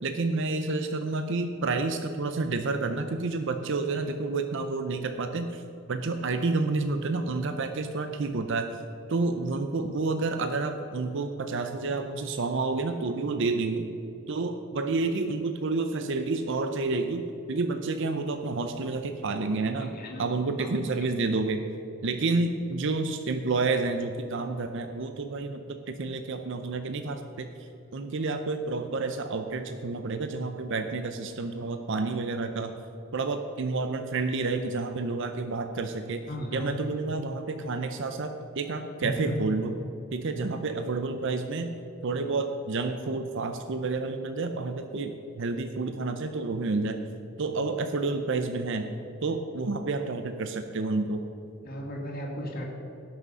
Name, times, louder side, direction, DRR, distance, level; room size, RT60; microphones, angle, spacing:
voice 1, 0.0-5.6 5.9-8.8 9.1-13.9 14.3-19.9 20.2-21.6 22.0-32.7 33.1-36.2 36.5-39.8 40.1-41.7 42.0-45.1 45.4-47.0 47.4-48.9 49.2-51.2, right 3 dB, 60° right, 7 dB, 0.6 m, -29 dB
voice 2, 19.8-20.3 20.6-20.8 36.3-36.9 39.0-39.4 51.6-52.6, equal, 45° left, -2 dB, 2.0 m, -35 dB
17.5 x 6.2 x 5.4 m, 2.9 s
head